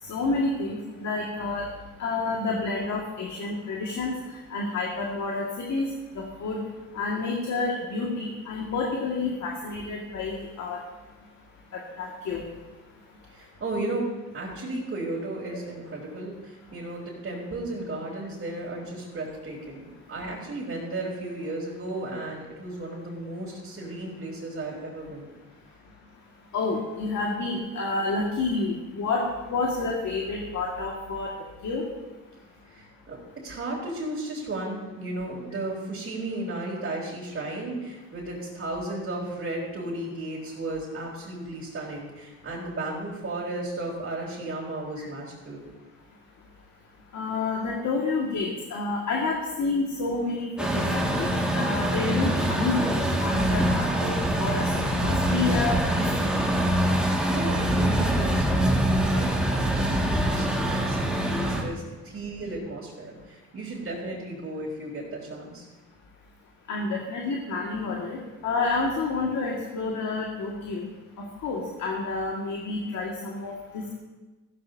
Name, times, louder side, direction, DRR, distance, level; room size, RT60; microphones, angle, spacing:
voice 1, 0.1-1.7 2.0-4.2 4.5-5.9 6.2-6.6 6.9-10.8 12.0-12.4 26.5-29.2 29.5-31.3 31.6-31.8 47.1-56.3 66.7-68.2 68.4-70.9 71.4-73.9, left 3 dB, 65° left, -2 dB, 2.0 m, -29 dB
voice 2, 13.3-25.3 32.7-45.6 57.0-65.7, right 2 dB, 45° right, -7 dB, 3.5 m, -34 dB
Truck, 50.6-61.6, right 1 dB, 5° right, 2.0 m, -24 dB
15.0 x 13.0 x 2.8 m, 1.2 s
cardioid pair, 90°, 30 cm